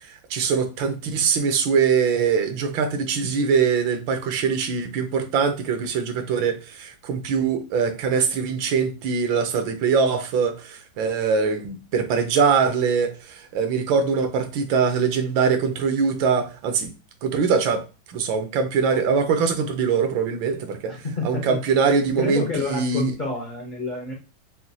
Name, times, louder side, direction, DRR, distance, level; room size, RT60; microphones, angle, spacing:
voice 1, 0.3-16.9 17.2-20.9 21.2-23.1, right 5 dB, 80° right, 1.5 m, -22 dB
voice 2, 20.8-21.6 22.2-24.1, left 3 dB, 70° left, 0.4 m, -28 dB
6.1 x 2.3 x 2.7 m
omnidirectional pair, 2.1 m